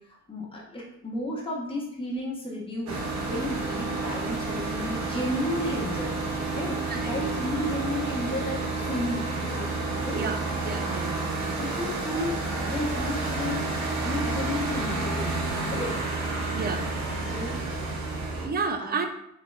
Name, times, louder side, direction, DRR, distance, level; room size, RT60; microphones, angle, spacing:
voice 1, 0.3-6.1 6.5-9.7 10.0-10.3 11.6-12.4 12.7-13.6 14.0-16.0 17.3-17.6 18.8-18.9, left 1 dB, 15° left, -4 dB, 1.2 m, -33 dB
sound 1, 2.9-18.5, right 3 dB, 65° right, 0.9 m, -30 dB
voice 2, 10.6-11.2 16.5-16.9 18.4-19.1, right 4 dB, 30° right, 6 dB, 0.5 m, -30 dB
3.7 x 2.8 x 2.5 m, 0.78 s
cardioid pair, 90°, 30 cm